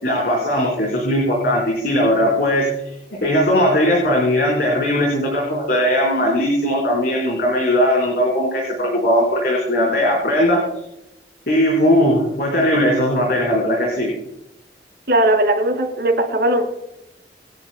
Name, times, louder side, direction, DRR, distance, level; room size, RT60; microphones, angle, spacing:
voice 1, 0.0-2.9 3.2-10.6 11.5-14.1, equal, 60° left, -2 dB, 4.4 m, -18 dB
voice 2, 15.1-16.6, right 1 dB, 60° right, 0 dB, 3.7 m, -18 dB
26.0 x 10.5 x 2.2 m, 0.84 s
head